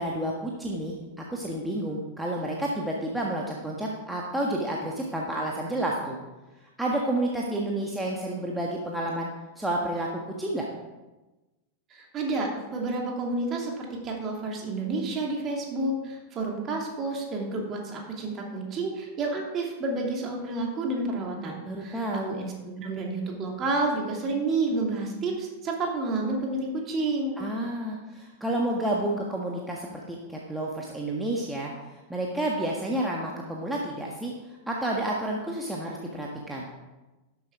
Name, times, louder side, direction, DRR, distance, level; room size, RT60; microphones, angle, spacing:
voice 1, 0.0-6.2 6.8-9.3 9.6-10.7 21.7-22.3 27.4-31.7 32.1-34.3 34.7-36.7, right 1 dB, 5° right, -3 dB, 1.5 m, -30 dB
voice 2, 11.9-22.0 22.3-27.4, right 2 dB, 30° right, 0 dB, 2.9 m, -30 dB
12.5 x 7.9 x 4.8 m, 1.1 s
figure-of-eight pair, 90°, 0 cm